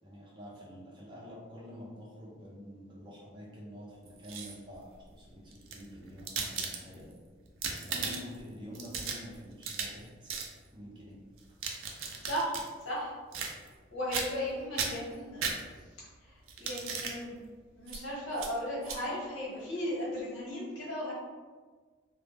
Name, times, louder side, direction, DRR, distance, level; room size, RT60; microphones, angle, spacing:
voice 1, 0.0-7.1 7.8-10.3 10.7-11.2, equal, 25° right, -5 dB, 0.6 m, -48 dB
sound 1, 4.1-4.8 5.5-7.1 7.5-8.4 8.7-10.0 10.3-10.5 11.4-12.7 13.3-13.8 14.1-14.5 14.8-16.0 16.5-17.2 17.9-18.0 18.4-18.5 18.8-19.0, right 5 dB, 85° right, 0.4 m, -36 dB
voice 2, 7.9-8.2 12.2-13.1 13.9-15.6 16.2-17.4 17.8-21.1, equal, 65° left, -7 dB, 1.1 m, -36 dB
2.1 x 2.1 x 3.3 m, 1.5 s
head